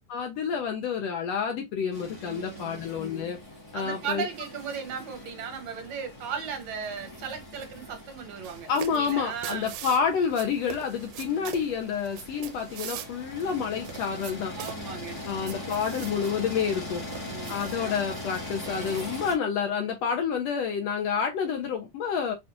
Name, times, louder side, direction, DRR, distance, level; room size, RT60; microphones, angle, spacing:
voice 1, 0.1-3.4 3.7-4.3 8.7-14.6 15.2-17.0 17.5-22.3, left 6 dB, 75° left, 1.5 m, -29 dB
sound 1, 1.9-19.3, left 1 dB, 25° left, 0.7 m, -41 dB
voice 2, 2.2-2.8 3.7-9.7 11.3-11.5 14.6-15.2 17.2-17.9, right 6 dB, 60° right, 2.3 m, -37 dB
sound 2, 8.4-19.0, right 11 dB, 80° right, 2.2 m, -44 dB
6.3 x 2.4 x 2.9 m
omnidirectional pair, 3.7 m